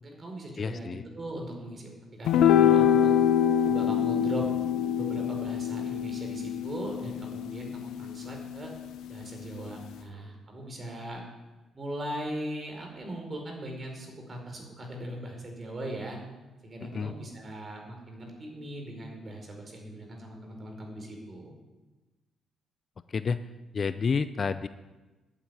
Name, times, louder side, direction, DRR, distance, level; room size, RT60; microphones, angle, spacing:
voice 1, 0.0-1.8 2.1-3.1 3.6-4.4 4.9-8.7 9.1-11.2 11.7-16.2 16.6-21.5, right 1 dB, 35° right, 2 dB, 4.7 m, -39 dB
voice 2, 0.6-1.0 16.9-17.1 23.1-23.4 23.7-24.7, left 5 dB, 40° left, 13 dB, 0.5 m, -29 dB
sound 1, 2.3-8.8, left 9 dB, 85° left, 0.7 m, -25 dB
11.5 x 8.8 x 9.4 m, 1.1 s
cardioid pair, 90°, 0 cm